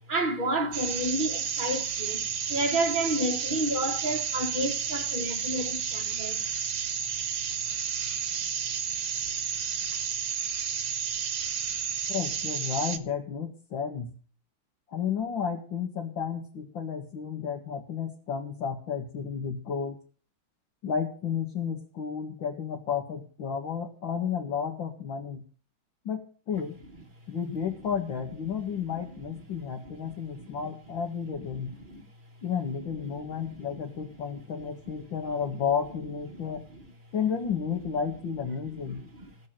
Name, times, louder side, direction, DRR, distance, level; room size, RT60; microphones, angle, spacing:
voice 1, 0.1-2.2 2.5-6.4 9.9-10.0 29.0-29.1 30.0-30.1 30.4-30.5 31.6-32.0 33.0-33.8 36.3-36.8 38.8-39.3, right 1 dB, 30° right, 1.3 m, -31 dB
sound 1, 0.7-13.0, right 7 dB, 65° right, 1.9 m, -31 dB
voice 2, 12.1-14.1 14.9-20.0 20.8-25.4 26.0-26.8 27.3-31.7 32.4-36.6 37.1-39.0, left 7 dB, 65° left, 2.7 m, -32 dB
17.0 x 6.9 x 9.1 m
omnidirectional pair, 2.3 m